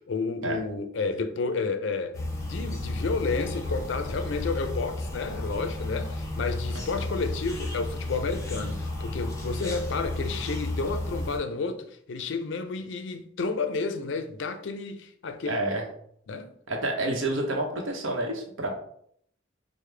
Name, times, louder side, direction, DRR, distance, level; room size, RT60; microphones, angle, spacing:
voice 1, 0.0-15.6 16.3-16.5, left 4 dB, 65° left, 0.4 m, -31 dB
sound 1, 2.1-11.4, left 1 dB, 15° left, 0.7 m, -33 dB
voice 2, 15.5-15.8 16.7-18.7, right 2 dB, 80° right, 0.8 m, -29 dB
4.8 x 2.1 x 3.2 m
head